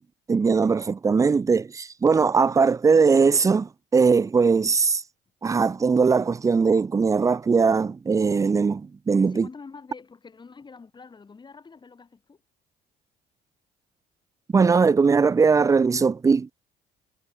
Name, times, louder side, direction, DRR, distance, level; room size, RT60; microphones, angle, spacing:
voice 1, 0.3-5.0 5.4-9.5 14.5-16.5, right 5 dB, 20° right, 0.4 m, -20 dB
voice 2, 9.2-12.4, left 4 dB, 25° left, 4.7 m, -46 dB
cardioid pair, 110°, 17 cm